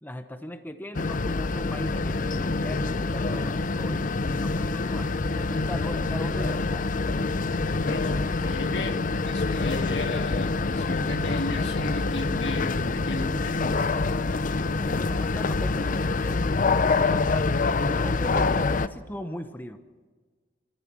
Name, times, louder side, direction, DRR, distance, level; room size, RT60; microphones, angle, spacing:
voice 1, 0.0-6.9 14.8-19.8, left 1 dB, 10° left, 8 dB, 0.9 m, -39 dB
sound 1, 0.9-18.9, left 3 dB, 50° left, 0.6 m, -26 dB
voice 2, 7.9-8.2 8.4-13.8, left 2 dB, 75° left, 4 dB, 2.4 m, -34 dB
26.0 x 14.0 x 7.2 m, 1.4 s
head